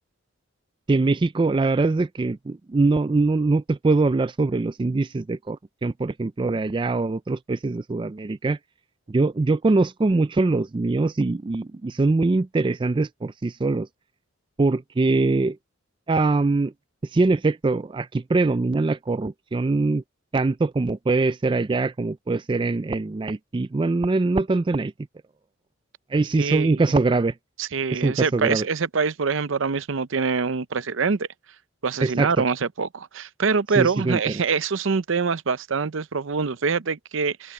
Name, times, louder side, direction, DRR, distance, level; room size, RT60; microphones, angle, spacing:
voice 1, 0.9-8.6 9.1-13.9 14.6-15.6 16.1-16.7 17.1-20.0 20.3-24.9 26.1-27.3 27.9-28.6 32.0-32.4 33.8-34.3, right 3 dB, 25° right, 0.3 m, -23 dB
voice 2, 26.4-26.8 27.6-31.3 31.8-37.5, right 5 dB, 70° right, 0.6 m, -25 dB
head